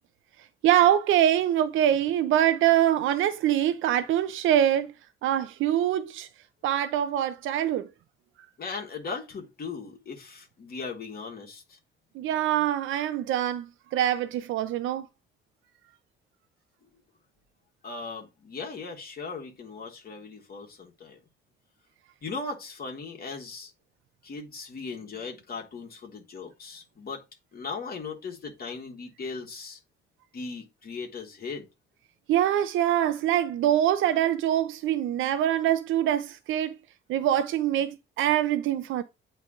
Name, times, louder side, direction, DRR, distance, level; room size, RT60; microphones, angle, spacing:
voice 1, 0.6-4.9 5.2-6.3 6.6-7.9 12.2-13.7 13.9-15.0 32.3-36.7 37.1-39.0, right 11 dB, 80° right, 0.6 m, -24 dB
voice 2, 8.6-11.8 17.8-21.2 22.2-23.7 24.2-27.2 27.5-29.8 30.3-31.7, left 4 dB, 50° left, 1.9 m, -38 dB
8.1 x 3.4 x 4.9 m
cardioid pair, 90°, 20 cm